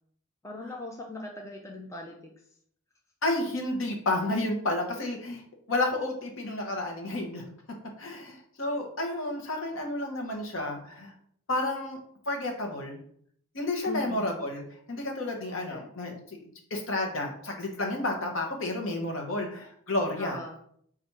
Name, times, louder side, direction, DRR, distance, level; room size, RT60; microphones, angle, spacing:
voice 1, 0.4-2.3 13.9-14.3 15.5-15.8 20.2-20.6, left 2 dB, 15° left, 0 dB, 0.4 m, -39 dB
voice 2, 3.2-5.4 5.7-7.5 8.0-11.1 11.5-12.0 12.3-13.0 13.5-16.4 16.7-20.4, left 2 dB, 65° left, 1 dB, 0.9 m, -31 dB
4.1 x 2.4 x 4.5 m, 0.65 s
head